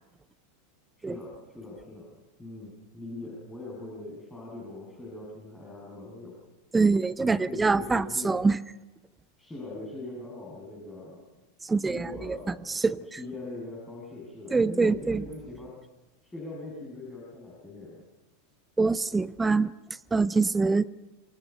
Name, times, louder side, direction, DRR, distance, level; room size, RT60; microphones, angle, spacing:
voice 1, 1.0-2.1 2.4-6.4 7.2-8.4 9.4-11.2 11.8-12.6 13.0-15.7 16.2-18.0, left 2 dB, 10° left, -5 dB, 7.6 m, -41 dB
voice 2, 6.7-8.6 11.7-12.4 12.7-13.0 14.5-15.2 18.8-19.7 20.1-20.9, right 4 dB, 10° right, 19 dB, 0.7 m, -24 dB
27.0 x 24.5 x 5.7 m, 1.1 s
figure-of-eight pair, 90°, 0 cm